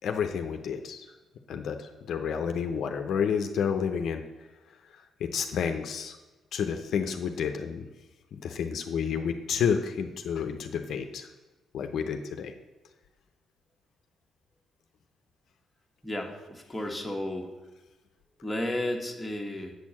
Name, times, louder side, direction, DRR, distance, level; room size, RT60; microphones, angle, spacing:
voice 1, 0.0-1.1 1.5-4.2 5.2-6.2 6.5-7.9 8.3-11.3 11.7-12.5, left 7 dB, 70° left, 6 dB, 0.6 m, -30 dB
voice 2, 16.0-17.5 18.4-19.7, left 1 dB, 10° left, 1 dB, 1.4 m, -33 dB
8.1 x 4.5 x 7.1 m, 1.1 s
cardioid pair, 90°, 0 cm